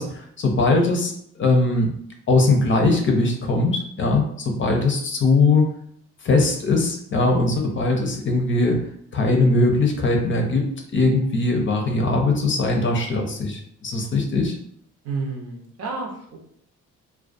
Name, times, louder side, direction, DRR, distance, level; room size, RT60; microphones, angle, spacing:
voice 1, 0.0-1.9 2.3-5.7 6.2-8.8 9.1-14.5, left 2 dB, 40° left, 3 dB, 0.6 m, -20 dB
voice 2, 15.0-16.4, right 3 dB, 55° right, 1 dB, 0.7 m, -30 dB
2.4 x 2.2 x 2.5 m, 0.66 s
cardioid pair, 90°, 30 cm